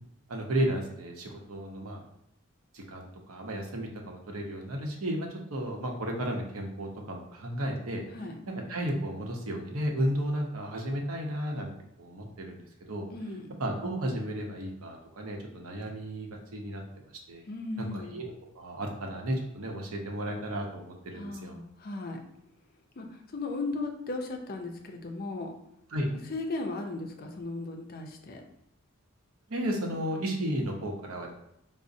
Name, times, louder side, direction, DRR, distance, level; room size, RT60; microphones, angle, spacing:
voice 1, 0.3-2.0 2.7-8.0 8.7-11.7 12.0-12.6 12.9-13.0 13.6-17.4 17.8-21.5 25.9-26.1 29.5-31.3, right 1 dB, 85° right, 1 dB, 0.7 m, -33 dB
voice 2, 13.1-13.5 17.5-18.2 21.1-22.2 23.0-25.5 26.3-28.4, left 2 dB, 45° left, 3 dB, 0.5 m, -36 dB
4.8 x 2.0 x 2.6 m, 0.80 s
head